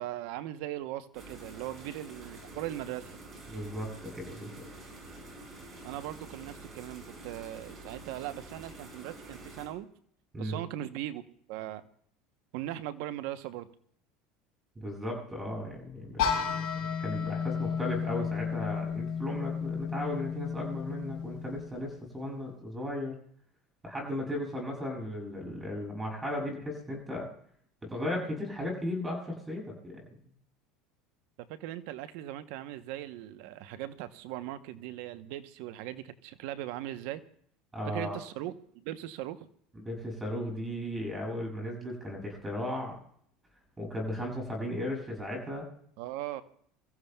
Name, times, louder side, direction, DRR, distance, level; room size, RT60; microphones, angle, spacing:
voice 1, 0.0-3.2 5.8-9.9 10.4-11.2 11.5-11.8 12.5-13.7 31.4-37.2 37.8-39.5 46.0-46.4, right 13 dB, 70° right, 12 dB, 0.8 m, -39 dB
sound 1, 1.1-9.7, right 2 dB, 35° right, 5.8 m, -48 dB
voice 2, 3.5-4.7 10.3-10.6 14.8-23.1 23.8-27.3 27.8-30.0 37.7-38.2 39.8-42.9 43.8-45.6, left 1 dB, 15° right, 0 dB, 7.2 m, -36 dB
sound 2, 16.2-22.0, left 7 dB, 60° left, 4.9 m, -33 dB
26.5 x 15.0 x 2.3 m, 0.63 s
supercardioid pair, 105°, 0 cm